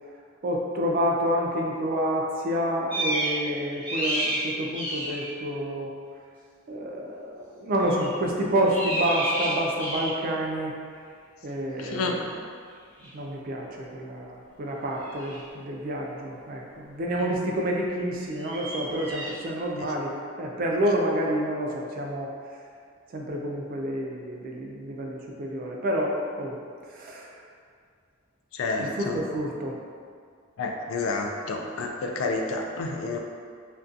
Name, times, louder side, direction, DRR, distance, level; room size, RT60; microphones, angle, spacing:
voice 1, 0.4-5.9 6.7-10.7 11.4-12.4 13.1-20.1 20.4-22.3 23.1-26.6 26.8-27.4 28.8-29.8, right 1 dB, 45° right, -1 dB, 0.3 m, -28 dB
sound 1, 2.9-3.4 3.7-5.3 7.8-8.1 8.6-10.3 13.0-13.1 15.0-15.4 18.3-19.4, right 1 dB, 5° left, 0.6 m, -30 dB
voice 2, 11.8-12.2 17.2-17.3 28.5-29.2 30.6-33.2, left 3 dB, 80° left, 3 dB, 0.3 m, -29 dB
2.4 x 2.2 x 2.5 m, 2.1 s
head